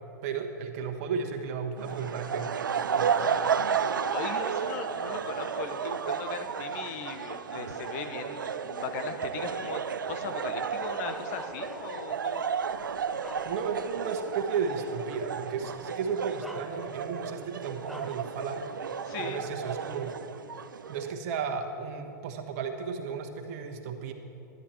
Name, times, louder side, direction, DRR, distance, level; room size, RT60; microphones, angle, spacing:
voice 1, 0.2-2.6 2.9-3.7 13.4-18.7 19.2-20.1 20.9-24.1, right 5 dB, 50° right, 4 dB, 1.2 m, -34 dB
sound 1, 1.8-21.1, right 7 dB, 90° right, 0.4 m, -33 dB
voice 2, 4.1-9.8 10.1-12.4 19.0-19.4, left 7 dB, 50° left, 8 dB, 0.9 m, -38 dB
Bark, 11.0-12.1 12.7-14.0 14.4-14.6 15.7-15.8 16.4-17.2 17.9-18.3, equal, ahead, 0.8 m, -45 dB
12.5 x 10.5 x 4.5 m, 2.9 s
hypercardioid pair, 110°, 10 cm